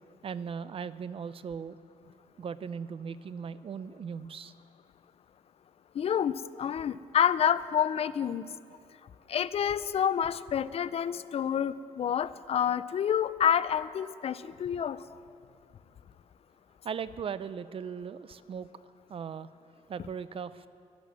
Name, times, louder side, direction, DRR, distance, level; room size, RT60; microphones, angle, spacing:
voice 1, 0.2-1.8 2.4-4.5 16.8-18.7 19.1-19.5 19.9-20.7, right 6 dB, 45° right, 16 dB, 0.5 m, -38 dB
voice 2, 6.0-8.5 9.3-15.0, left 8 dB, 50° left, 17 dB, 0.4 m, -28 dB
11.0 x 11.0 x 7.4 m, 2.5 s
cardioid pair, 80°, 13 cm